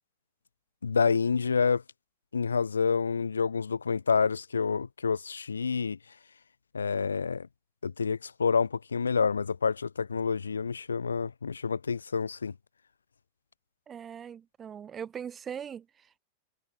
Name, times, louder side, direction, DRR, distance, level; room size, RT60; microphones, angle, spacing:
voice 1, 0.8-1.8 2.3-6.0 6.7-7.5 7.8-12.5, left 5 dB, 75° left, 2.8 m, -28 dB
voice 2, 13.9-16.2, right 8 dB, 25° right, 5.2 m, -41 dB
figure-of-eight pair, 90°, 0 cm